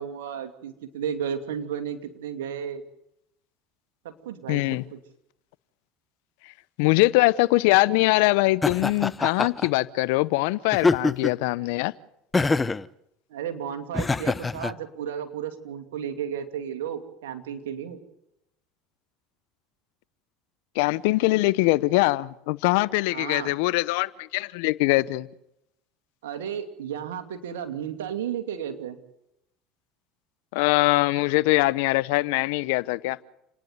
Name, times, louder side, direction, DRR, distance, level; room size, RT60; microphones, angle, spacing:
voice 1, 0.0-2.8 4.0-4.6 4.9-5.0 13.3-18.0 23.1-23.5 26.2-29.0, right 8 dB, 80° right, 2.6 m, -33 dB
voice 2, 4.5-4.8 6.8-11.9 20.7-25.3 30.5-33.2, left 21 dB, 75° left, 0.8 m, -22 dB
Laughter, 8.6-9.7 10.7-11.4 12.3-12.8 13.9-14.7, left 3 dB, 20° left, 0.8 m, -24 dB
29.0 x 10.5 x 9.5 m
hypercardioid pair, 85°, 0 cm